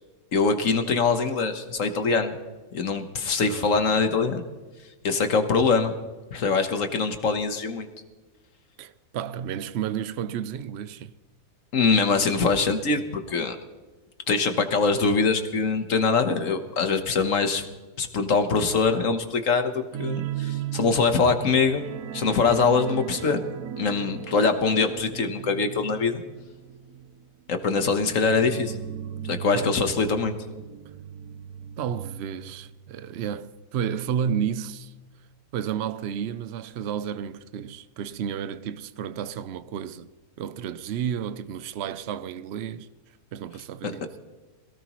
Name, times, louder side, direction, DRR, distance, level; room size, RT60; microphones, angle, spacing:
voice 1, 0.3-2.3 2.7-4.4 5.0-5.9 6.3-7.9 11.7-13.6 14.3-17.6 18.0-21.9 22.1-23.4 23.8-26.2 27.5-28.8 29.2-30.4 43.8-43.9, left 4 dB, 55° left, 1.4 m, -23 dB
voice 2, 3.4-3.7 8.8-11.1 29.5-29.8 31.8-34.9 35.5-40.1 40.4-42.9 43.3-44.0, right 8 dB, 85° right, 0.5 m, -32 dB
sound 1, 19.9-33.2 33.5-33.7 34.1-34.2, right 10 dB, 65° right, 1.1 m, -37 dB
22.0 x 17.0 x 3.0 m
omnidirectional pair, 1.8 m